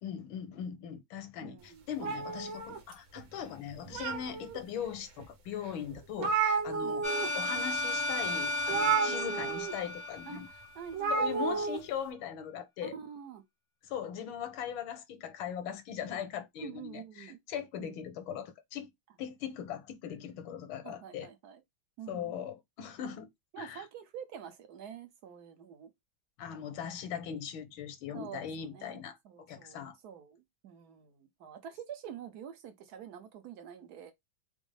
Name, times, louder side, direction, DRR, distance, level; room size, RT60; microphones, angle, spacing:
voice 1, 0.0-7.1 7.3-10.5 11.1-12.9 13.8-18.9 19.2-21.3 22.1-23.3 23.6-23.9 26.4-29.2 29.5-30.0, left 8 dB, 80° left, 1.6 m, -40 dB
voice 2, 1.4-1.9 4.3-4.5 6.8-7.0 9.0-9.2 10.3-11.7 12.8-13.4 16.6-17.4 17.8-18.0 20.8-21.6 22.0-22.4 23.5-25.9 28.1-34.1, right 8 dB, 60° right, 1.1 m, -47 dB
sound 1, 2.0-3.2 3.7-4.6 5.2-5.3 5.6-5.7 5.9-7.3 7.6-7.8 8.7-9.7 10.9-11.8, right 5 dB, 85° right, 1.9 m, -31 dB
sound 2, 7.0-10.9, left 2 dB, 65° left, 0.4 m, -34 dB
5.2 x 2.0 x 3.2 m
omnidirectional pair, 2.2 m